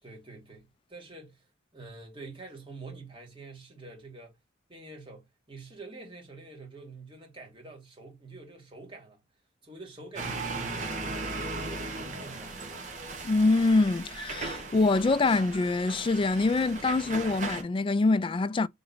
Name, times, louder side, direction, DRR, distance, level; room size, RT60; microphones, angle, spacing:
voice 1, 0.0-1.4 1.7-4.4 4.7-9.2 9.6-12.6, right 3 dB, 25° right, 2.1 m, -46 dB
sound 1, 10.2-17.6, right 3 dB, 40° right, 1.5 m, -37 dB
voice 2, 13.2-18.7, left 3 dB, 25° left, 0.3 m, -25 dB
3.9 x 3.2 x 3.8 m
head